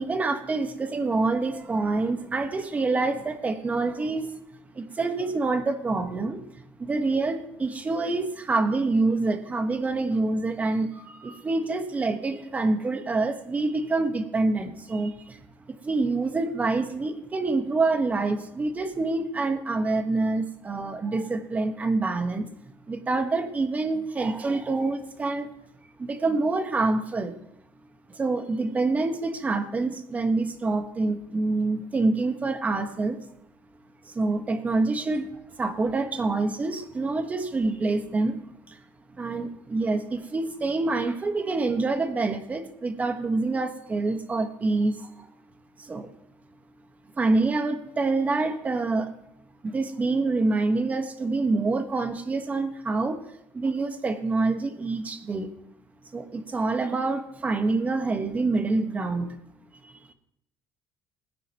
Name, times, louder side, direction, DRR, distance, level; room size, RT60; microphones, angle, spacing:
voice 1, 0.0-4.3 4.7-15.4 15.7-22.5 22.9-25.5 26.0-27.3 28.1-33.2 34.0-35.3 35.6-38.4 38.7-38.8 39.1-45.3 45.8-46.1 47.2-49.1 49.6-53.2 53.5-55.5 56.1-59.4 59.8-59.9, right 3 dB, 25° right, 6 dB, 1.5 m, -26 dB
20.5 x 9.9 x 3.1 m, 0.77 s
cardioid pair, 110°, 6 cm